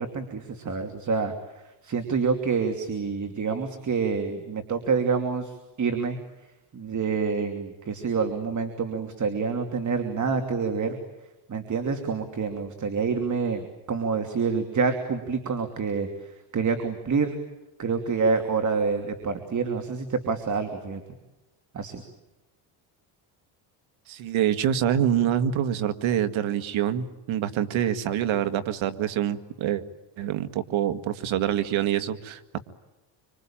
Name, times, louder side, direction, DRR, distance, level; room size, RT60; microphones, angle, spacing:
voice 1, 0.0-1.3 1.8-6.2 6.7-11.0 11.5-16.1 16.5-17.3 17.8-21.0 21.7-22.0, right 5 dB, 35° right, 6 dB, 2.9 m, -27 dB
voice 2, 24.1-29.8 30.2-32.6, right 10 dB, 70° right, 11 dB, 2.0 m, -26 dB
26.0 x 25.5 x 8.9 m, 1.0 s
cardioid pair, 115°, 50 cm